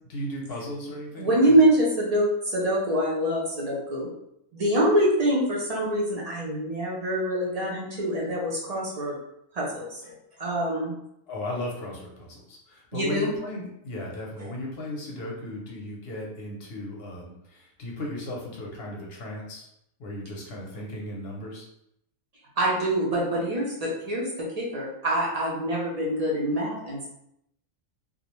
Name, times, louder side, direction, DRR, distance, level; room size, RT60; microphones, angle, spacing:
voice 1, 0.1-1.6 11.3-19.7 20.0-21.7, left 1 dB, 60° left, -2 dB, 0.7 m, -36 dB
voice 2, 1.2-4.1 4.5-9.1 9.5-11.0 12.9-13.3 14.4-14.5 22.6-27.1, right 1 dB, 50° right, -5 dB, 0.4 m, -25 dB
2.4 x 2.0 x 2.9 m, 0.77 s
omnidirectional pair, 1.4 m